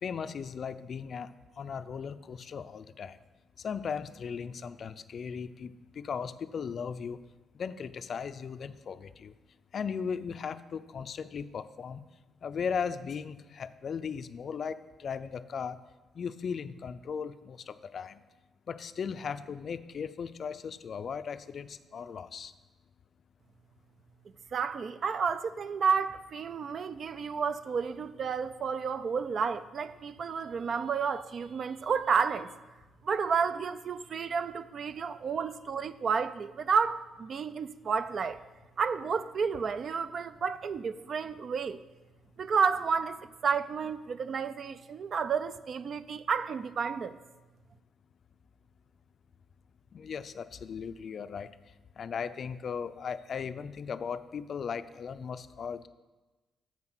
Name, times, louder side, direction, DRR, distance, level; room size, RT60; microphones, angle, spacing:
voice 1, 0.0-1.3 1.6-3.2 3.6-7.2 7.5-9.3 9.7-12.0 12.4-15.8 16.2-18.2 18.7-22.5 49.9-51.5 52.0-55.9, left 6 dB, 55° left, 0.4 m, -37 dB
voice 2, 24.5-32.5 33.0-38.4 38.8-41.8 42.4-47.2, right 6 dB, 50° right, 0.4 m, -31 dB
7.2 x 5.7 x 6.2 m
cardioid pair, 90°, 0 cm